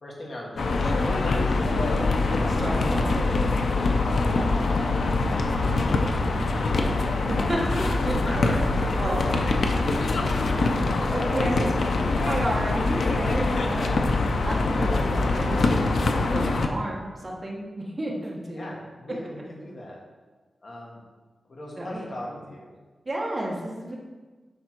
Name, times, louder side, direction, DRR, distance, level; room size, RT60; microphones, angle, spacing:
voice 1, 0.0-1.4 1.9-3.3 4.1-6.9 7.6-9.3 10.1-11.9 12.2-12.3 13.7-14.0 14.7-15.7 18.5-20.0 20.6-21.0 21.5-22.7, left 1 dB, 50° left, -2 dB, 1.6 m, -39 dB
sound 1, 0.6-16.7, left 3 dB, 80° left, 0.6 m, -24 dB
voice 2, 2.6-3.2 7.3-8.2 8.9-9.2 11.1-11.7 12.2-14.1 14.4-15.6 16.3-18.7 21.8-22.0 22.3-22.4 23.0-24.0, right 1 dB, 25° right, -3 dB, 1.3 m, -31 dB
10.0 x 3.6 x 4.5 m, 1.3 s
wide cardioid pair, 160°, 0 cm